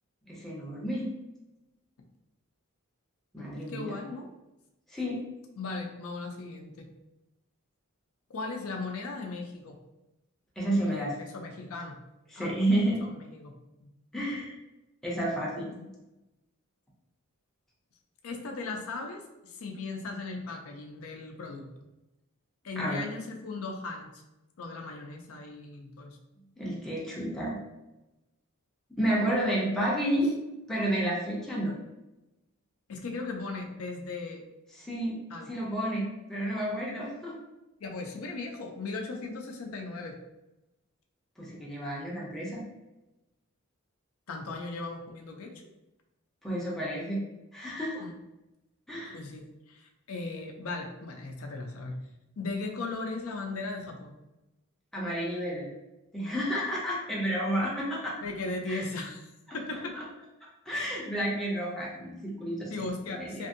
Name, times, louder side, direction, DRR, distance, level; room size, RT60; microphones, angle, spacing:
voice 1, 0.2-1.1 3.3-3.9 4.9-5.2 10.6-11.1 12.3-13.1 14.1-14.6 15.0-15.7 22.8-23.0 26.6-27.6 29.0-30.3 30.7-31.8 34.7-35.2 35.5-37.4 41.4-42.6 46.4-47.2 47.5-48.0 48.9-49.2 54.9-55.7 56.1-58.2 58.7-58.8 59.7-60.0 60.7-62.7 63.1-63.5, right 1 dB, ahead, -5 dB, 0.5 m, -31 dB
voice 2, 3.4-4.3 5.6-6.9 8.3-9.8 10.8-12.0 12.4-12.5 13.0-13.5 13.8-13.9 15.7-15.9 18.2-21.7 22.6-24.1 24.6-26.2 32.9-34.4 35.3-35.5 37.8-40.1 44.3-45.5 48.0-48.2 49.1-52.0 52.4-54.1 58.2-59.2 59.5-59.9 60.7-60.8 62.7-63.5, left 3 dB, 75° left, 3 dB, 0.5 m, -37 dB
2.6 x 2.5 x 2.5 m, 0.96 s
head